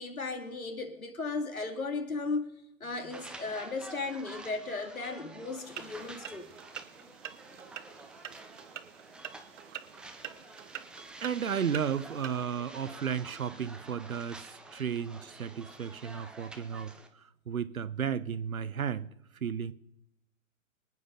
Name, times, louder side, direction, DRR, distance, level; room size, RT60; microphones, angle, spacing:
voice 1, 0.0-2.4 2.8-6.5, left 3 dB, 90° left, 2.6 m, -36 dB
sound 1, 3.1-17.1, right 2 dB, ahead, 0.6 m, -49 dB
sound 2, 5.6-12.4, right 10 dB, 60° right, 1.2 m, -46 dB
voice 2, 11.2-14.5 14.7-16.9 17.5-19.1 19.4-19.7, right 7 dB, 80° right, 1.0 m, -33 dB
25.5 x 9.4 x 3.9 m
figure-of-eight pair, 125°, 41 cm